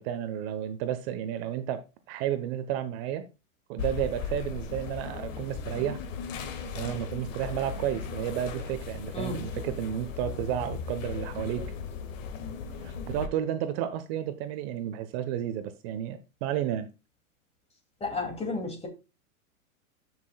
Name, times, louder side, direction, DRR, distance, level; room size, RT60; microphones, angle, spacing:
voice 1, 0.0-3.3 3.7-6.0 6.7-11.6 12.8-16.9, right 10 dB, 45° right, 1.1 m, -32 dB
sound 1, 3.8-13.3, left 6 dB, 65° left, 1.8 m, -37 dB
voice 2, 18.0-18.9, left 3 dB, 15° left, 2.5 m, -32 dB
13.0 x 6.3 x 2.3 m
hypercardioid pair, 135°, 42 cm